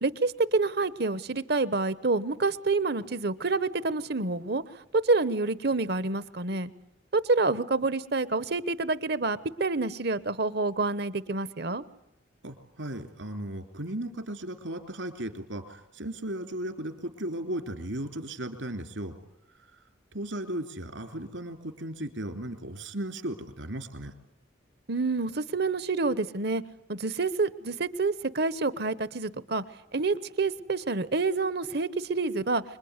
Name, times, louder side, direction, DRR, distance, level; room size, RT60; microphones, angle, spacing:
voice 1, 0.0-4.6 5.0-6.7 7.1-11.8 24.9-26.6 26.9-29.6 29.9-32.6, right 3 dB, 55° right, 16 dB, 1.1 m, -28 dB
voice 2, 12.4-19.1 20.1-24.1, right 1 dB, 75° right, 7 dB, 3.3 m, -36 dB
26.0 x 22.0 x 9.7 m, 0.81 s
head